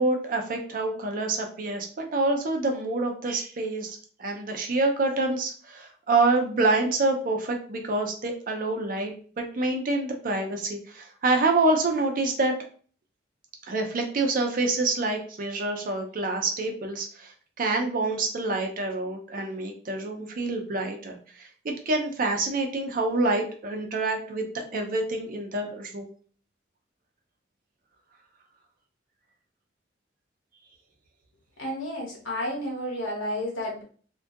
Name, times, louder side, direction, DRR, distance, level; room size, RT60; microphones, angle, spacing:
voice 1, 0.0-12.5 13.7-26.1, right 2 dB, 45° right, 3 dB, 0.5 m, -27 dB
voice 2, 31.6-33.8, left 1 dB, 85° left, -2 dB, 1.1 m, -31 dB
2.4 x 2.2 x 2.6 m, 0.43 s
head